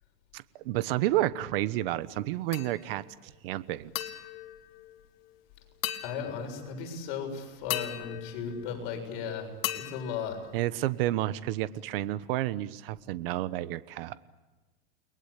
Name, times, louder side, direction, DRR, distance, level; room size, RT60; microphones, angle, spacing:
voice 1, 0.3-3.9 10.5-14.2, right 15 dB, 65° right, 14 dB, 1.2 m, -30 dB
sound 1, 2.5-3.1 3.9-5.4 5.8-6.8 7.7-9.2 9.6-11.0, left 13 dB, 70° left, 2.1 m, -38 dB
voice 2, 6.0-10.4, left 6 dB, 55° left, 4 dB, 7.1 m, -36 dB
30.0 x 22.0 x 8.5 m, 1.2 s
supercardioid pair, 155°, 30 cm